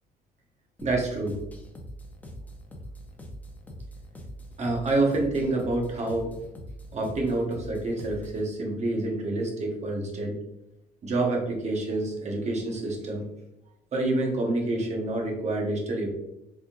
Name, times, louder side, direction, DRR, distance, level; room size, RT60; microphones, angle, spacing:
sound 1, 0.8-8.5, equal, 10° left, 0.7 m, -43 dB
voice 1, 0.8-1.3 4.6-6.3 6.9-10.4 11.0-13.3 13.9-16.1, right 2 dB, 40° right, 0 dB, 1.1 m, -27 dB
3.9 x 3.7 x 2.5 m, 0.86 s
cardioid pair, 110°, 17 cm